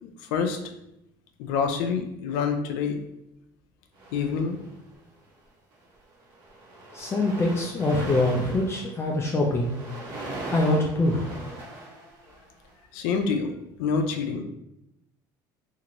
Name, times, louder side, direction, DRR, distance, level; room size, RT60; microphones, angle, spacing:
voice 1, 0.0-0.6 1.4-3.0 4.1-4.6 12.9-13.5 13.8-14.4, left 5 dB, 90° left, 5 dB, 0.4 m, -27 dB
sound 1, 4.0-5.0 5.7-5.9 6.2-12.7, right 2 dB, 60° right, 1.1 m, -40 dB
voice 2, 6.9-9.7 10.5-11.3, left 1 dB, 25° left, -1 dB, 0.4 m, -24 dB
2.8 x 2.5 x 2.9 m, 0.84 s
supercardioid pair, 105°, 10 cm